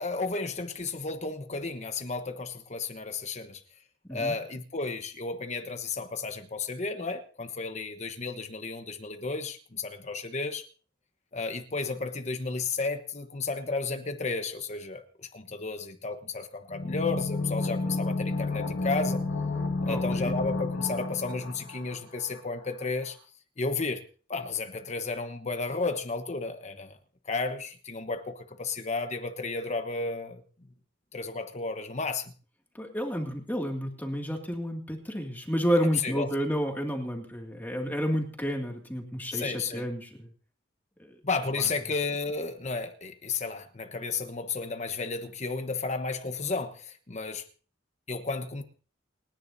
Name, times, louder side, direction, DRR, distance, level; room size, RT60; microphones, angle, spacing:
voice 1, 0.0-3.6 4.1-10.7 11.3-19.2 19.8-23.2 23.6-24.0 24.3-27.0 27.2-30.4 31.1-32.3 35.9-36.3 39.3-39.9 41.2-47.5 48.1-48.6, left 3 dB, 40° left, 1.1 m, -33 dB
sound 1, 16.7-22.4 22.6-22.7, left 3 dB, 85° left, 2.0 m, -31 dB
voice 2, 19.9-20.3 32.7-40.3 41.0-41.2, equal, 10° left, 2.3 m, -30 dB
29.0 x 10.5 x 2.8 m
head